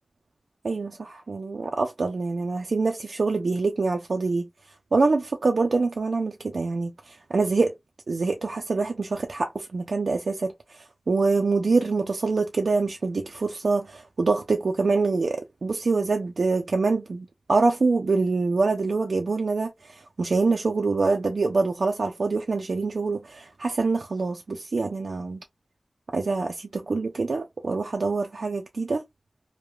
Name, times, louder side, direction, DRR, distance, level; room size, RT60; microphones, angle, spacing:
voice 1, 0.6-4.5 4.9-7.7 8.1-10.5 11.1-19.7 20.2-25.4 26.1-29.0, right 3 dB, 85° right, 0.4 m, -25 dB
3.1 x 2.1 x 2.2 m
wide cardioid pair, 50°, 0 cm